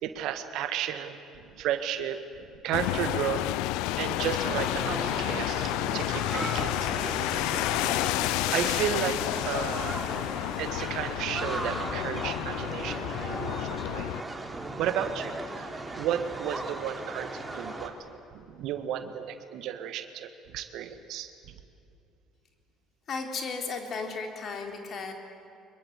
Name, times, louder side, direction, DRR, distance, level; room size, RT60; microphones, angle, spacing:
voice 1, 0.0-1.2 1.4-2.2 2.6-3.5 3.8-6.9 7.1-7.3 7.8-7.9 8.5-10.0 10.6-14.1 14.8-15.3 16.0-21.3, right 9 dB, 65° right, 9 dB, 1.6 m, -33 dB
sound 1, 2.7-14.2, left 16 dB, 75° left, 0.5 m, -30 dB
sound 2, 4.4-17.9, right 2 dB, 20° right, 3.5 m, -37 dB
voice 2, 23.1-25.1, left 4 dB, 50° left, 3 dB, 3.6 m, -35 dB
24.5 x 22.5 x 8.2 m, 2.6 s
hypercardioid pair, 60°, 0 cm